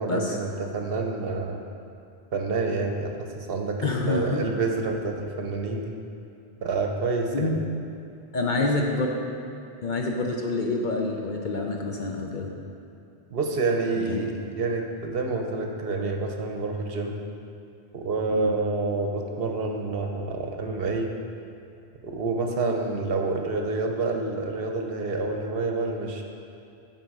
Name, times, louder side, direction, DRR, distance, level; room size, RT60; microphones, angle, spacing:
voice 1, 0.0-1.6 2.3-5.9 6.6-7.5 13.3-17.2 17.9-21.1 22.0-26.2, right 3 dB, 60° right, 3 dB, 0.9 m, -28 dB
voice 2, 3.8-4.4 7.3-7.6 8.3-9.1 9.8-12.5 14.0-14.2 18.3-18.5, left 3 dB, 50° left, 0 dB, 0.7 m, -27 dB
10.5 x 4.1 x 4.7 m, 2.7 s
omnidirectional pair, 1.1 m